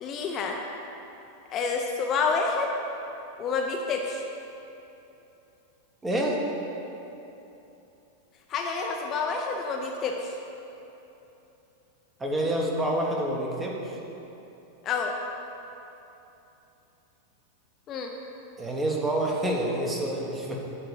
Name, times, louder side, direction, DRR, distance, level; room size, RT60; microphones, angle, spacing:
voice 1, 0.0-0.6 1.5-2.8 3.4-4.2 8.5-10.3 14.8-15.1 17.9-18.1, left 4 dB, 30° left, 1 dB, 0.6 m, -28 dB
voice 2, 6.0-6.4 12.2-13.8 18.6-20.6, right 1 dB, 15° right, -1 dB, 1.2 m, -27 dB
8.9 x 3.9 x 6.9 m, 3.0 s
figure-of-eight pair, 90°, 0 cm